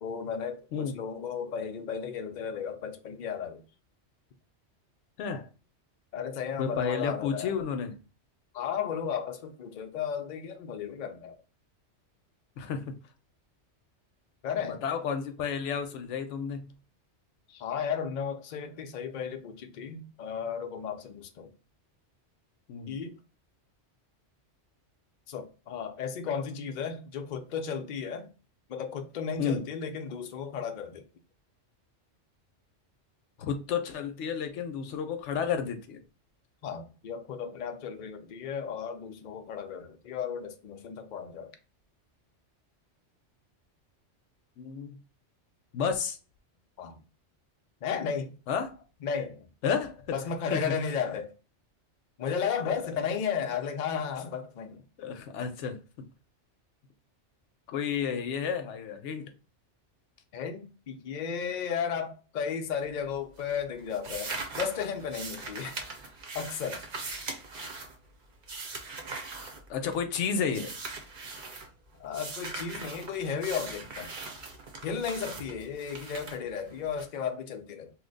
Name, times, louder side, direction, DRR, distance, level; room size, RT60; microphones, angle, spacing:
voice 1, 0.0-3.6 6.1-7.5 8.5-11.4 14.4-14.8 17.5-21.5 22.9-23.1 25.3-28.3 28.7-31.0 36.6-41.5 46.8-47.0 47.8-48.3 49.0-49.4 50.1-51.3 52.2-54.8 60.3-65.8 66.3-66.9 72.0-74.1 74.8-77.9, left 7 dB, 60° left, 0.5 m, -34 dB
voice 2, 6.6-8.0 12.6-12.9 14.6-16.6 22.7-22.9 29.4-29.6 33.4-36.0 44.6-45.0 45.7-46.2 48.5-48.8 49.6-50.2 50.5-50.7 52.6-52.7 55.0-56.1 57.7-59.3 69.7-70.7, left 6 dB, 75° left, 0.9 m, -31 dB
sound 1, 62.7-63.1 63.4-70.1 70.5-71.7 72.1-77.0, right 3 dB, 50° right, 0.7 m, -40 dB
2.9 x 2.1 x 3.8 m
omnidirectional pair, 1.2 m